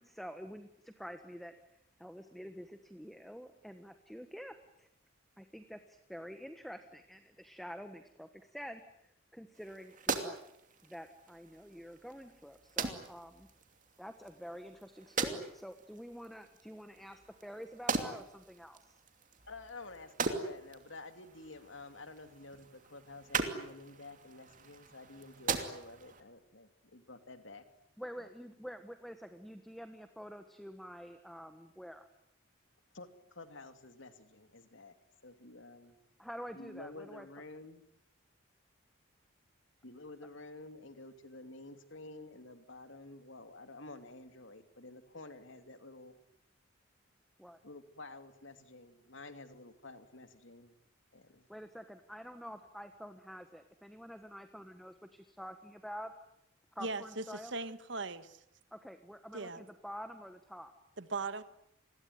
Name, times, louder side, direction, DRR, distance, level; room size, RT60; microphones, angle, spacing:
voice 1, 0.0-1.5 2.0-4.9 5.4-10.4 10.8-13.5 14.0-18.9 28.0-32.1 36.2-37.3 47.4-47.6 51.5-56.1 56.7-57.5 58.7-60.7, equal, ahead, 1.3 m, -48 dB
sound 1, 9.5-26.2, right 4 dB, 40° right, 2.8 m, -41 dB
voice 2, 19.5-27.6 28.2-28.3 32.9-34.9 35.2-36.0 36.5-37.8 39.8-46.1 47.6-50.7 51.1-51.5, left 2 dB, 65° left, 2.7 m, -51 dB
voice 3, 56.8-58.4 59.3-59.6 61.0-61.4, right 3 dB, 60° right, 1.6 m, -39 dB
29.5 x 21.0 x 9.4 m
head